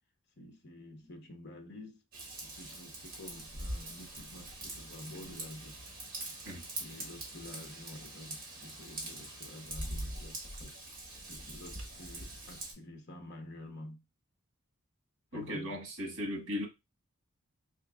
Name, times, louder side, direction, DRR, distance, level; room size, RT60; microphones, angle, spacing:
voice 1, 0.4-2.0 2.4-5.8 6.8-10.8 11.3-14.0 15.3-15.8, left 1 dB, 50° left, 0.9 m, -49 dB
Raindrop / Vehicle horn car horn honking / Trickle dribble, 2.1-12.7, right 1 dB, 40° right, 1.7 m, -43 dB
voice 2, 15.3-16.7, left 1 dB, 60° right, 1.4 m, -37 dB
4.9 x 3.0 x 2.3 m
head